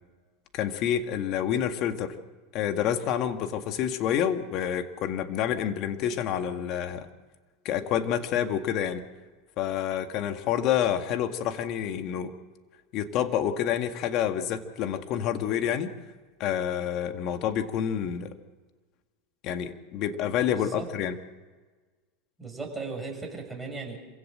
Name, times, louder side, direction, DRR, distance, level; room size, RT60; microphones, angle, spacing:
voice 1, 0.5-2.2 2.5-7.1 7.6-9.0 9.6-12.3 12.9-15.9 16.4-18.3 19.4-21.2, left 9 dB, 50° left, 7 dB, 2.0 m, -28 dB
voice 2, 20.4-20.9 22.4-24.0, right 3 dB, 5° right, -1 dB, 6.6 m, -37 dB
26.5 x 16.5 x 7.7 m, 1.3 s
supercardioid pair, 120°, 0 cm